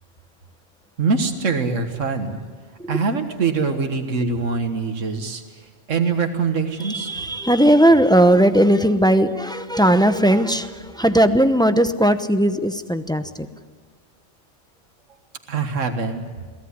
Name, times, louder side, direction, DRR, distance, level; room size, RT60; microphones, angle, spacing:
voice 1, 1.0-2.4 2.9-7.2 15.5-16.2, right 4 dB, 80° right, 6 dB, 1.9 m, -23 dB
voice 2, 6.8-13.5, right 1 dB, 5° left, 9 dB, 0.7 m, -17 dB
22.5 x 17.0 x 9.7 m, 1.6 s
omnidirectional pair, 1.3 m